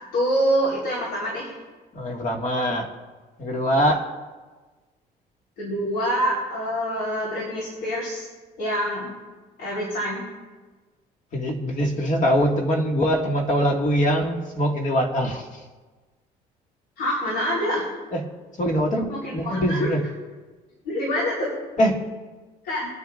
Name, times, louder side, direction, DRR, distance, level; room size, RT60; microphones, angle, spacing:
voice 1, 0.1-1.5 5.6-8.3 8.6-9.1 9.6-10.2 17.0-17.8 19.1-19.9 20.8-21.5 22.6-22.9, equal, 80° left, -4 dB, 4.2 m, -25 dB
voice 2, 1.9-2.9 3.4-4.0 11.3-15.5 18.1-18.3 18.6-20.0 21.8-22.1, equal, 45° left, 1 dB, 2.1 m, -23 dB
25.5 x 9.5 x 2.6 m, 1.3 s
cardioid pair, 110°, 17 cm